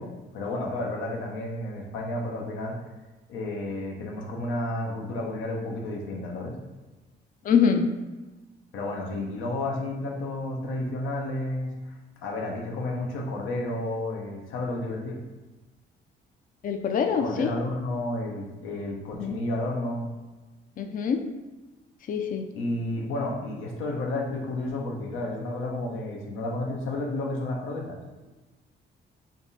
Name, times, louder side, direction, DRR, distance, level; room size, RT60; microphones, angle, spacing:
voice 1, 0.0-2.8 3.3-6.6 8.7-11.7 12.2-15.2 17.2-20.1 22.6-28.0, left 1 dB, 85° left, 0 dB, 0.8 m, -31 dB
voice 2, 7.4-7.8 9.2-9.3 16.6-17.5 19.1-19.4 20.8-21.2 22.1-22.4, left 6 dB, 45° left, 5 dB, 0.4 m, -24 dB
3.5 x 2.4 x 4.0 m, 1.2 s
cardioid pair, 90°, 20 cm